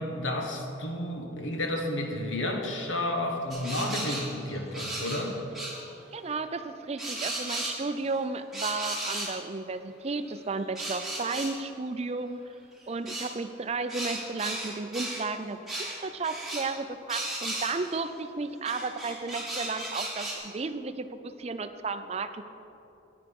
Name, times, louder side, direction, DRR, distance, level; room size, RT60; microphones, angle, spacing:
voice 1, 0.0-5.4, left 1 dB, 85° left, 2 dB, 1.6 m, -31 dB
sound 1, 3.5-5.2 5.5-5.8 7.0-8.1 8.5-9.3 10.3-11.5 13.1-13.3 13.9-15.2 15.7-16.0 16.2-16.7 17.1-17.9 18.6-20.4, right 1 dB, ahead, 2.1 m, -35 dB
voice 2, 6.1-12.4 12.9-22.4, right 3 dB, 35° right, 10 dB, 0.4 m, -33 dB
9.7 x 9.6 x 5.3 m, 2.8 s
head